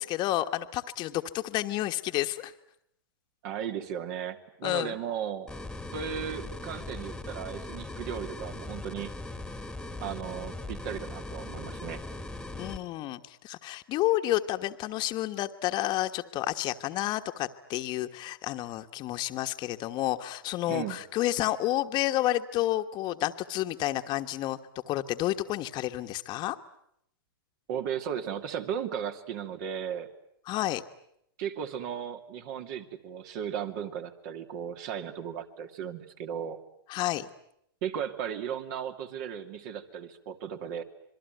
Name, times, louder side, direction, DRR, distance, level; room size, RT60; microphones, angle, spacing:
voice 1, 0.0-2.5 4.6-4.9 12.5-24.6 24.9-26.6 30.5-30.8 36.9-37.3, left 15 dB, 35° left, 8 dB, 1.4 m, -30 dB
voice 2, 3.4-5.5 5.9-9.1 10.0-12.0 20.7-21.0 27.7-30.1 31.4-36.6 37.8-40.8, right 8 dB, 50° right, 7 dB, 2.6 m, -36 dB
sound 1, 5.5-12.8, left 2 dB, 5° left, 1.8 m, -39 dB
27.0 x 22.5 x 9.3 m, 0.72 s
hypercardioid pair, 125°, 13 cm